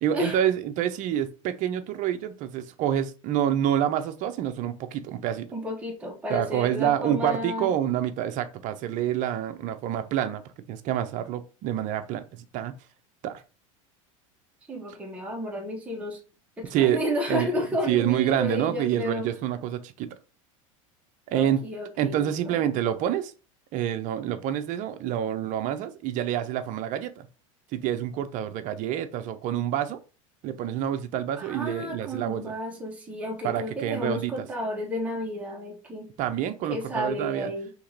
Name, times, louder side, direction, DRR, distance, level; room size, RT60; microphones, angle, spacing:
voice 1, 0.0-5.5 6.3-10.4 10.7-12.7 13.2-13.4 16.7-17.0 17.3-20.2 21.3-21.6 22.0-23.3 23.7-27.3 27.7-30.0 30.4-32.5 33.4-34.5 36.2-37.5, right 10 dB, 45° right, 0.5 m, -27 dB
voice 2, 5.5-7.7 14.7-16.2 16.6-19.3 21.3-22.6 31.4-36.1 36.6-37.7, left 1 dB, 10° right, 0.9 m, -32 dB
2.9 x 2.8 x 3.8 m
supercardioid pair, 110°, 17 cm